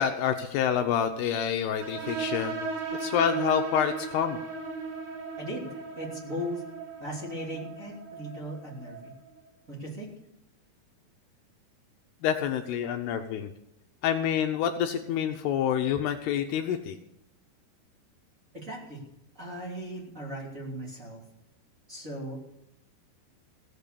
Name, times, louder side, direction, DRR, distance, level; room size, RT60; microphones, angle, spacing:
voice 1, 0.0-2.6 2.9-4.4 12.2-13.5 14.0-17.0, left 8 dB, 75° left, 6 dB, 2.6 m, -27 dB
sound 1, 1.8-9.1, right 4 dB, 70° right, 4.3 m, -36 dB
voice 2, 5.4-5.7 6.0-6.6 7.0-9.1 9.7-10.1 18.5-19.0 19.4-21.2 21.9-22.4, equal, 20° right, -4 dB, 2.9 m, -37 dB
16.5 x 8.1 x 6.9 m, 0.82 s
omnidirectional pair, 5.1 m